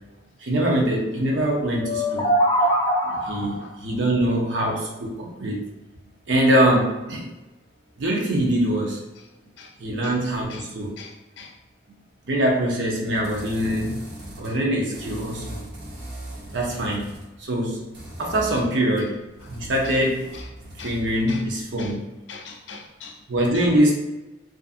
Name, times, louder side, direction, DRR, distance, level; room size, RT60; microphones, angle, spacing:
voice 1, 0.4-2.3 3.0-5.6 6.3-7.3 8.0-9.0 9.8-11.0 12.3-15.6 16.5-17.1 17.4-17.9 18.2-20.3 20.8-22.0 23.3-23.9, right 1 dB, 85° right, -1 dB, 0.6 m, -23 dB
sound 1, 1.8-3.6, equal, 20° left, 0.4 m, -22 dB
voice 2, 11.0-11.5 19.8-20.0 20.3-20.4 20.8-21.0 21.3-21.4 21.8-21.9 22.3-23.2 23.5-23.7, left 5 dB, 80° left, 3 dB, 0.4 m, -41 dB
sound 2, 13.2-14.6 14.9-17.3 17.9-21.5, right 1 dB, 60° right, 0.9 m, -39 dB
2.5 x 2.5 x 2.4 m, 1.0 s
head